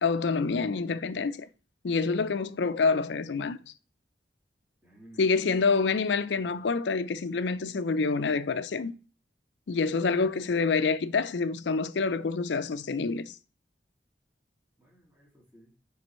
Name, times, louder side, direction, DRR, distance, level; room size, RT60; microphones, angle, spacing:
voice 1, 0.0-1.5 1.8-3.6 5.2-8.9 9.7-13.4, left 4 dB, 90° left, 0.5 m, -27 dB
voice 2, 4.8-5.8 6.2-6.6 10.0-10.2 14.8-15.7, equal, 10° right, 2.0 m, -56 dB
9.6 x 3.5 x 3.0 m
head